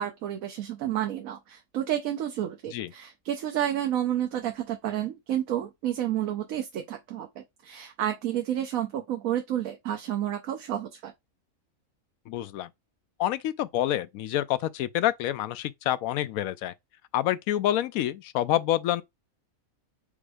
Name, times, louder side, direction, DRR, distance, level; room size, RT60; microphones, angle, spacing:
voice 1, 0.0-11.1, right 11 dB, 80° right, 1.2 m, -30 dB
voice 2, 12.3-12.7 13.2-16.7 17.1-19.0, left 13 dB, 85° left, 1.0 m, -27 dB
5.2 x 2.0 x 4.8 m
omnidirectional pair, 1.4 m